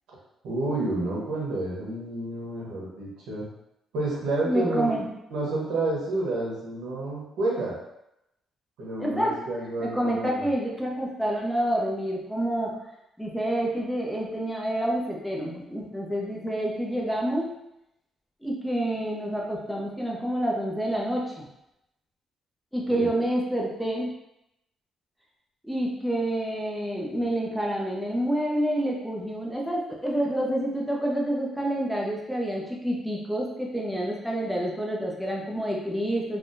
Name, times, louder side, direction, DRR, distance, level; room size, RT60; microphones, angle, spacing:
voice 1, 0.4-3.4 3.9-5.0 5.3-7.7 8.8-10.5 22.9-23.1, right 2 dB, 85° right, -5 dB, 1.1 m, -29 dB
voice 2, 4.4-5.1 9.0-9.4 9.8-12.8 13.2-17.5 18.4-21.5 22.7-24.1 25.6-36.4, right 1 dB, ahead, -3 dB, 0.7 m, -28 dB
3.3 x 2.2 x 2.7 m, 0.85 s
cardioid pair, 90°, 0 cm